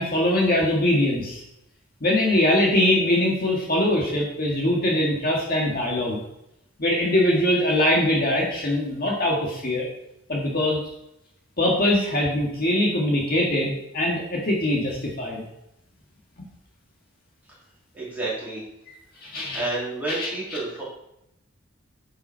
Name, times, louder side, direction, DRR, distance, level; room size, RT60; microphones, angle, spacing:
voice 1, 0.0-1.4 2.0-6.2 6.8-9.8 10.3-10.8 11.6-15.4 19.2-19.6 20.1-20.3, left 1 dB, 45° left, -2 dB, 1.7 m, -22 dB
voice 2, 17.9-18.6 19.5-20.8, right 2 dB, 10° right, -7 dB, 3.4 m, -30 dB
10.5 x 5.7 x 4.5 m, 0.82 s
head